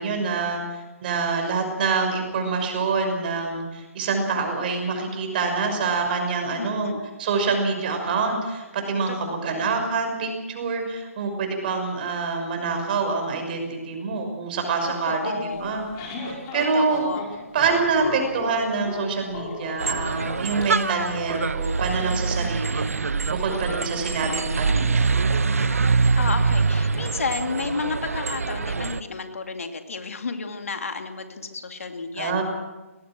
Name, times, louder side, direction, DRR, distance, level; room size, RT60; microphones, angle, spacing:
voice 1, 0.0-6.9 7.2-15.9 16.2-17.0 17.5-22.9 23.3-25.1 32.2-32.4, right 4 dB, 40° right, 4 dB, 6.1 m, -26 dB
voice 2, 6.6-7.0 9.1-9.9 14.8-16.0 16.7-17.2 23.8-23.9 26.2-32.4, left 4 dB, 70° left, 6 dB, 2.6 m, -32 dB
sound 1, 15.6-20.7, left 3 dB, 25° left, 5.0 m, -36 dB
sound 2, 19.8-29.0, right 4 dB, 75° right, 1.0 m, -24 dB
23.0 x 19.5 x 6.2 m, 1.1 s
figure-of-eight pair, 140°, 8 cm